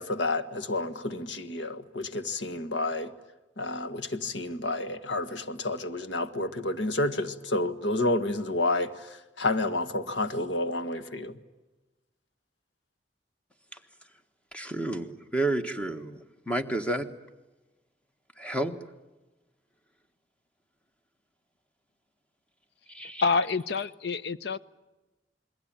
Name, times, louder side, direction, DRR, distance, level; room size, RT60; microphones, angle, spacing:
voice 1, 0.0-3.1 3.6-11.3, left 2 dB, 85° left, 1.7 m, -30 dB
voice 2, 14.5-16.2 16.5-17.1 18.4-18.8 22.9-23.2, right 1 dB, 5° left, 1.6 m, -30 dB
voice 3, 23.2-24.6, left 4 dB, 65° left, 0.8 m, -27 dB
28.5 x 21.5 x 9.0 m
head